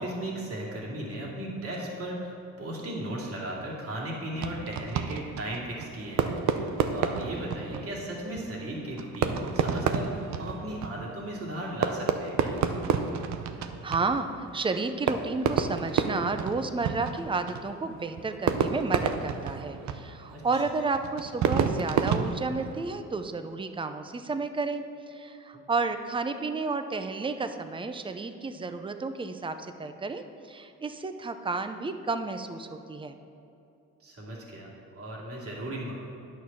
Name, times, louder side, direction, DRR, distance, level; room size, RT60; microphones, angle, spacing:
voice 1, 0.0-12.5 20.3-20.6 34.0-35.9, right 1 dB, 50° right, -3 dB, 2.5 m, -36 dB
Fireworks, 4.3-23.2, right 7 dB, 70° right, 0.7 m, -31 dB
voice 2, 13.6-33.2, right 3 dB, 15° right, 8 dB, 0.6 m, -32 dB
9.3 x 6.6 x 5.6 m, 2.7 s
cardioid pair, 90°, 30 cm